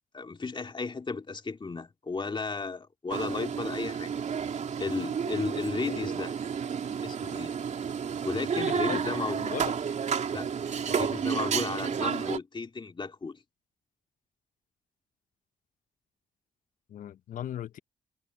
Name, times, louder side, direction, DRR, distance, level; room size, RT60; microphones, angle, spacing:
voice 1, 0.1-4.2 4.8-6.4 7.0-7.5 8.2-9.4 10.3-10.5 10.9-13.4, left 4 dB, 35° left, 2.7 m, -34 dB
sound 1, 3.1-12.4, right 7 dB, 55° right, 3.4 m, -31 dB
voice 2, 8.5-9.1 9.4-9.7 16.9-17.8, left 11 dB, 65° left, 1.2 m, -37 dB
hypercardioid pair, 45°, 15 cm